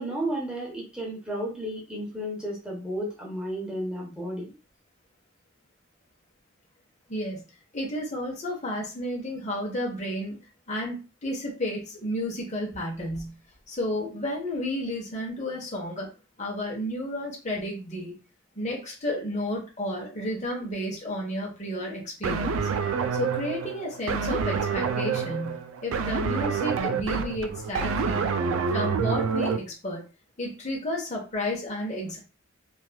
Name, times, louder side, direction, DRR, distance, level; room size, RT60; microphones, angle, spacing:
voice 1, 0.0-4.5, right 1 dB, 5° right, -4 dB, 1.0 m, -33 dB
voice 2, 7.1-7.4 7.7-10.4 10.7-13.3 13.7-16.1 16.4-18.1 18.5-22.7 23.1-28.3 28.7-30.0 30.4-32.2, left 1 dB, 35° left, -1 dB, 1.0 m, -32 dB
sound 1, 22.2-29.6, right 5 dB, 80° right, 0.3 m, -27 dB
3.0 x 2.5 x 2.2 m, 0.32 s
head